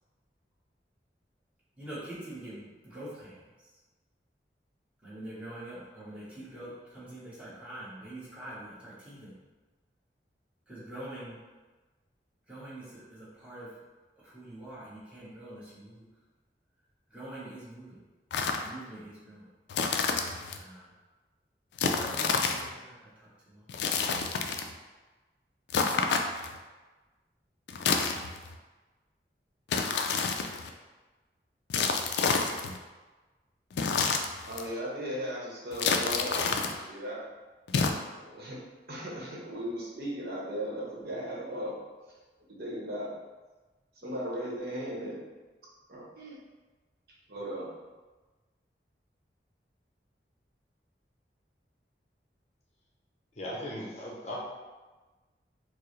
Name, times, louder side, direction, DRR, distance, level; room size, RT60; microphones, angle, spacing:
voice 1, 1.8-3.8 5.0-9.4 10.7-11.4 12.5-13.8 14.2-16.1 17.1-18.0 18.6-19.5 20.6-20.9 21.9-23.7, right 1 dB, 5° right, -10 dB, 1.0 m, -45 dB
sound 1, 18.3-18.7 19.7-20.6 21.8-22.7 23.7-24.7 25.7-26.6 27.7-28.5 29.7-30.7 31.7-32.8 33.7-34.7 35.7-36.8 37.7-37.9, left 5 dB, 75° left, 0.3 m, -29 dB
voice 2, 34.5-37.2 38.1-41.8 42.6-43.1 44.0-45.2 45.9-46.4 47.3-47.7, equal, 60° right, -5 dB, 0.9 m, -37 dB
voice 3, 53.3-54.4, left 1 dB, 40° left, -4 dB, 0.6 m, -37 dB
4.5 x 2.0 x 3.1 m, 1.2 s
head